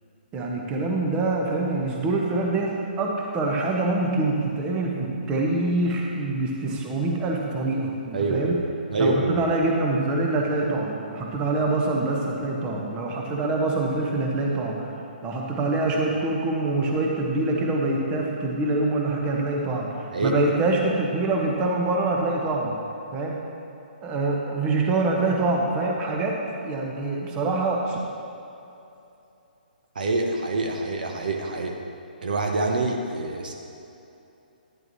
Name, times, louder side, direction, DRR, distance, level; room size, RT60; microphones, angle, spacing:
voice 1, 0.3-8.6 9.0-14.9 15.2-22.7 23.1-23.4 24.0-28.0, right 2 dB, 20° right, 0 dB, 1.1 m, -25 dB
voice 2, 8.1-8.6 8.9-9.4 20.1-20.4 29.9-31.8 32.2-33.5, right 2 dB, 60° right, 2 dB, 0.8 m, -25 dB
10.5 x 10.5 x 3.0 m, 2.8 s
figure-of-eight pair, 130°, 5 cm